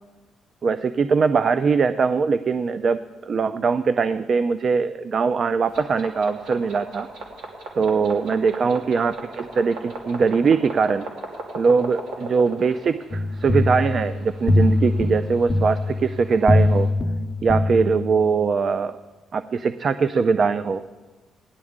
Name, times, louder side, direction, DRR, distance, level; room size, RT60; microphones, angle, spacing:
voice 1, 0.6-7.1 7.7-11.1 11.6-16.9 17.4-19.0 19.3-20.8, right 5 dB, 50° right, 12 dB, 0.4 m, -21 dB
sound 1, 5.7-16.9, right 2 dB, 80° right, 2.7 m, -39 dB
sound 2, 13.1-18.4, left 2 dB, 25° left, 0.8 m, -22 dB
18.0 x 11.0 x 3.6 m, 1.3 s
cardioid pair, 90°, 0 cm